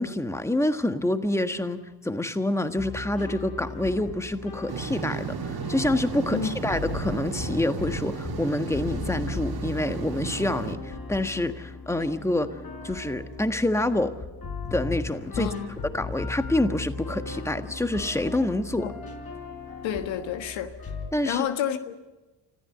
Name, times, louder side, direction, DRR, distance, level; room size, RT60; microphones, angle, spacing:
voice 1, 0.0-12.5 12.8-14.1 14.7-15.5 15.9-18.9 21.1-21.4, left 1 dB, 5° left, 8 dB, 1.5 m, -27 dB
sound 1, 2.8-21.1, left 4 dB, 50° left, 4.3 m, -37 dB
sound 2, 4.7-10.8, right 5 dB, 50° right, 2.2 m, -34 dB
voice 2, 15.4-15.7 18.8-18.9 19.8-20.7 21.2-22.0, left 9 dB, 80° left, 8 dB, 1.5 m, -29 dB
26.5 x 14.5 x 7.9 m, 1.1 s
supercardioid pair, 60°, 45 cm